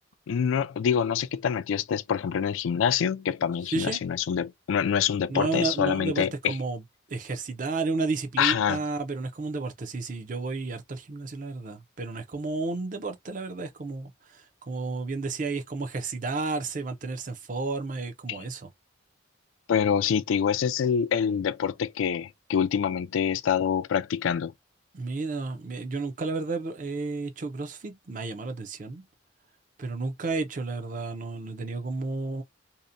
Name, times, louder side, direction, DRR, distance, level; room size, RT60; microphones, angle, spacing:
voice 1, 0.3-6.5 8.4-8.8 18.3-18.4 19.7-24.5, left 8 dB, 80° left, 0.3 m, -26 dB
voice 2, 3.7-4.0 5.3-6.8 7.1-18.7 24.9-29.0 29.8-32.4, right 3 dB, 40° right, 0.5 m, -32 dB
2.7 x 2.1 x 2.5 m
head